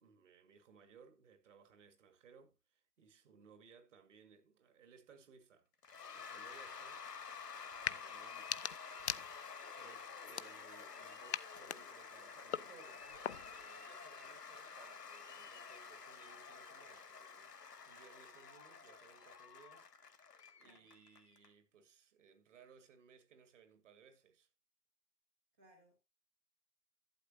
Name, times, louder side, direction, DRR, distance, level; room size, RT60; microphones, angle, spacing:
voice 1, 0.0-5.7 6.1-7.1 7.8-9.0 9.5-20.2 20.5-24.5, right 6 dB, 50° right, 2.0 m, -63 dB
Cheering / Applause / Crowd, 5.8-21.5, left 6 dB, 75° left, 1.6 m, -51 dB
sound 1, 7.7-8.0 8.3-9.7 10.2-10.9 11.3-13.7, left 8 dB, 45° left, 0.4 m, -43 dB
voice 2, 20.6-20.9 25.6-26.0, right 1 dB, 10° right, 0.5 m, -68 dB
12.0 x 8.4 x 2.7 m
figure-of-eight pair, 135°, 48 cm